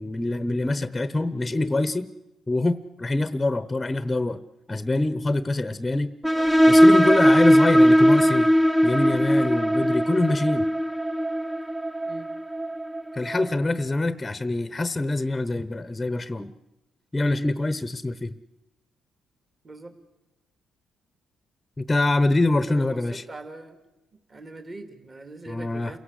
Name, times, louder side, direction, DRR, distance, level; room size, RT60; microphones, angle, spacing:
voice 1, 0.0-2.1 2.5-4.4 4.7-6.1 6.7-8.5 8.8-10.7 13.1-16.5 17.1-18.3 21.8-23.2 25.5-25.9, left 2 dB, 15° left, 13 dB, 1.0 m, -25 dB
sound 1, 6.2-13.5, equal, 5° right, 0.8 m, -19 dB
voice 2, 19.6-19.9 22.5-23.8 24.3-26.0, right 2 dB, 30° right, 7 dB, 2.7 m, -41 dB
28.5 x 17.0 x 8.3 m, 0.98 s
cardioid pair, 90°, 0 cm